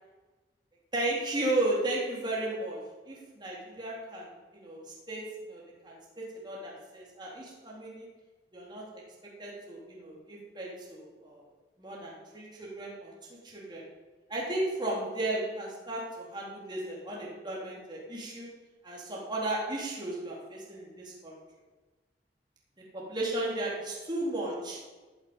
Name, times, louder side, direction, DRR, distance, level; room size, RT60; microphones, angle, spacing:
voice 1, 0.9-2.8 3.1-8.1 8.5-9.0 9.4-11.4 11.8-13.1 13.4-13.8 14.3-18.5 18.8-21.4 22.9-24.8, right 2 dB, 25° right, -4 dB, 3.7 m, -35 dB
15.0 x 8.9 x 8.8 m, 1.3 s
head